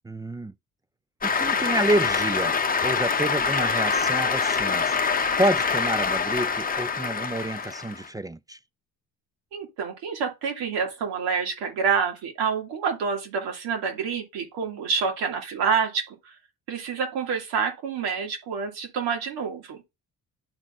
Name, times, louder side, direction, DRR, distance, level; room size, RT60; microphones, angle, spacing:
voice 1, 0.0-0.5 1.2-2.6 2.8-8.6, right 1 dB, 10° right, 0.3 m, -28 dB
Cheering / Applause, 1.2-8.1, left 5 dB, 25° left, 0.8 m, -25 dB
voice 2, 9.5-16.3 16.7-19.8, right 6 dB, 85° right, 2.3 m, -28 dB
12.0 x 4.1 x 2.5 m
cardioid pair, 85°, 37 cm